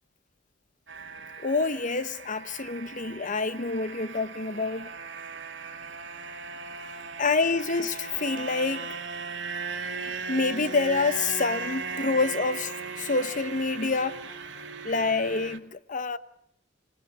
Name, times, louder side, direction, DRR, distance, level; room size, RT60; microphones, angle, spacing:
sound 1, 0.9-15.6, right 4 dB, 70° right, 2.2 m, -37 dB
voice 1, 1.4-4.9 7.2-8.9 10.3-12.7 13.0-14.2 14.8-16.2, left 3 dB, 45° left, 1.1 m, -27 dB
24.5 x 20.5 x 8.6 m
head